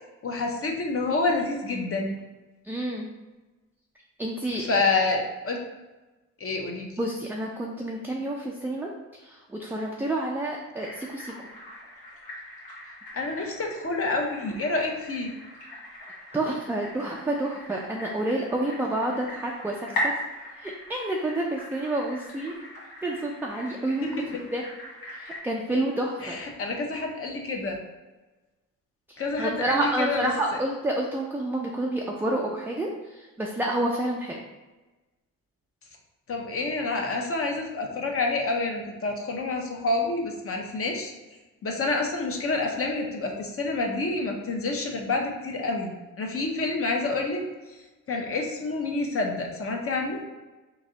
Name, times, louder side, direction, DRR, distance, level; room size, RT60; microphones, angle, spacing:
voice 1, 0.2-2.1 4.7-5.6 6.4-6.9 13.1-15.3 24.0-24.3 26.2-27.8 29.2-30.3 36.3-41.1 41.6-45.9 46.2-47.4 48.1-50.2, left 3 dB, 40° left, 2 dB, 0.8 m, -28 dB
voice 2, 2.6-3.1 4.2-4.8 7.0-8.9 9.2-11.3 16.3-20.2 20.6-22.6 23.0-24.2 24.5-24.6 25.1-26.4 29.1-34.4, right 1 dB, 5° right, -1 dB, 0.3 m, -29 dB
sound 1, 10.8-25.4, equal, 80° left, 1.4 m, -39 dB
3.1 x 2.7 x 3.8 m, 1.2 s
cardioid pair, 90°, 35 cm